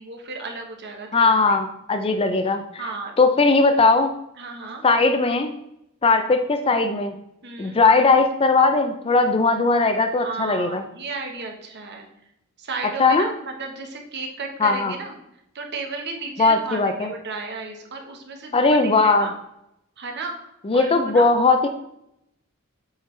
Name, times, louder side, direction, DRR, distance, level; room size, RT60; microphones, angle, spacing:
voice 1, 0.0-1.6 2.8-3.1 4.4-4.8 7.4-7.8 10.2-12.1 12.6-15.2 15.5-19.3 20.0-21.3, right 3 dB, 55° right, 2 dB, 1.2 m, -34 dB
voice 2, 1.1-2.8 3.2-4.1 4.8-5.5 6.0-7.2 7.6-10.8 13.0-13.3 14.6-14.9 16.4-17.1 18.5-19.3 20.6-21.7, left 3 dB, 25° left, 7 dB, 0.4 m, -19 dB
8.1 x 4.6 x 3.3 m, 0.80 s
head